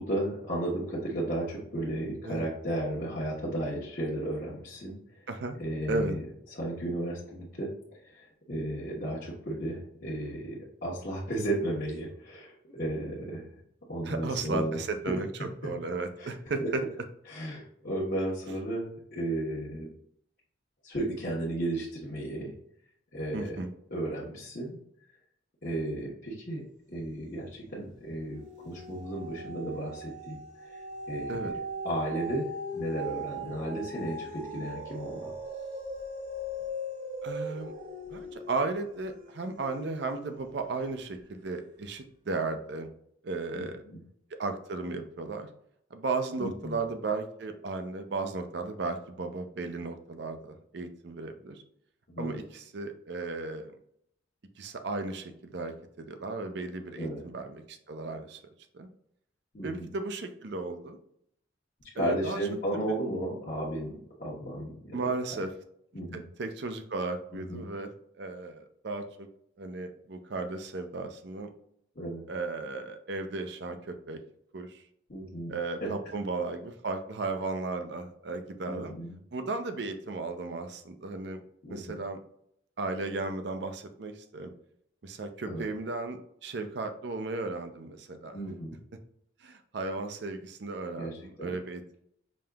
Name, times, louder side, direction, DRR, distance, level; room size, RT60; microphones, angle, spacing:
voice 1, 0.0-5.0 5.6-6.2 6.5-7.7 8.0-13.5 13.9-14.8 15.1-15.2 16.2-16.3 16.6-16.7 17.3-19.9 20.8-22.5 23.1-23.6 23.9-24.8 25.6-26.6 26.9-30.4 30.6-30.8 31.1-31.4 31.8-35.3 43.5-44.0 46.4-46.8 52.1-52.4 57.0-57.2 59.5-59.9 61.9-65.0 65.3-65.4 65.9-66.3 67.3-67.7 71.9-72.2 75.1-75.5 75.8-76.1 78.7-79.1 81.6-82.0 85.4-85.6 88.3-88.8 91.0-91.5, right 1 dB, 50° left, -8 dB, 1.0 m, -34 dB
voice 2, 5.3-5.6 5.9-6.2 14.1-16.8 23.3-23.7 31.3-31.5 37.2-37.7 38.1-42.9 43.2-43.8 44.4-45.5 45.9-51.6 52.2-53.7 54.6-58.4 58.7-58.9 59.6-61.0 62.0-62.4 64.9-65.5 66.1-67.9 68.2-69.3 69.6-71.5 72.3-74.2 74.5-74.8 75.5-78.9 79.3-81.4 81.7-82.2 82.8-84.5 85.0-88.4 89.4-91.9, right 3 dB, 60° right, 7 dB, 0.5 m, -35 dB
sound 1, 27.2-27.8 28.1-40.6 41.1-41.2, equal, 85° right, 1.1 m, -39 dB
5.2 x 2.8 x 2.3 m, 0.70 s
head